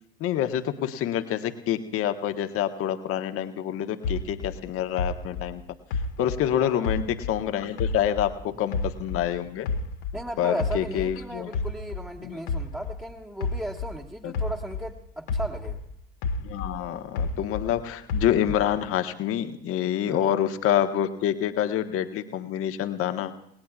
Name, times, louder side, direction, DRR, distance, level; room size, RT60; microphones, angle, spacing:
voice 1, 0.2-5.6 6.2-9.7 10.4-11.5 12.2-12.4 14.2-14.3 16.4-23.3, left 10 dB, 45° left, 8 dB, 1.4 m, -27 dB
sound 1, 4.0-7.4 7.8-10.2 10.6-14.9 15.3-17.7 18.1-18.8, left 3 dB, 60° left, 1.5 m, -31 dB
voice 2, 6.6-6.9 8.4-8.6 10.1-15.8 20.0-20.3, equal, 5° right, -4 dB, 1.6 m, -36 dB
29.0 x 19.0 x 2.5 m, 0.77 s
figure-of-eight pair, 70°, 31 cm